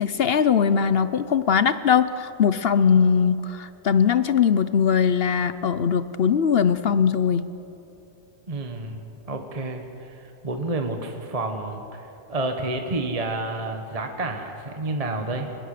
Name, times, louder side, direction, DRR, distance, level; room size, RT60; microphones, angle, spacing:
voice 1, 0.0-7.5, left 7 dB, 55° left, 13 dB, 0.7 m, -20 dB
voice 2, 8.5-9.0 9.3-15.6, right 2 dB, 25° right, 4 dB, 1.4 m, -30 dB
23.5 x 21.5 x 6.7 m, 2.8 s
omnidirectional pair, 1.6 m